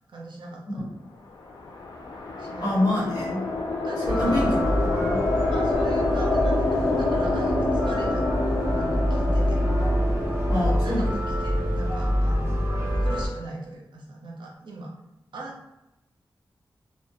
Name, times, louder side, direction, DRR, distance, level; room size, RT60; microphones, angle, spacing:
voice 1, 0.1-0.8 2.4-2.8 3.7-4.5 5.5-8.5 8.7-9.6 10.5-12.7 13.0-14.9 15.3-15.7, right 2 dB, 85° right, -1 dB, 0.5 m, -40 dB
sound 1, 1.4-11.8, left 2 dB, 75° left, 0.4 m, -28 dB
voice 2, 2.6-3.4 4.1-5.2 10.5-11.0, left 1 dB, 55° left, -6 dB, 1.1 m, -26 dB
sound 2, 4.0-13.3, equal, 30° right, 0.7 m, -25 dB
2.2 x 2.0 x 2.7 m, 0.91 s
wide cardioid pair, 115°, 8 cm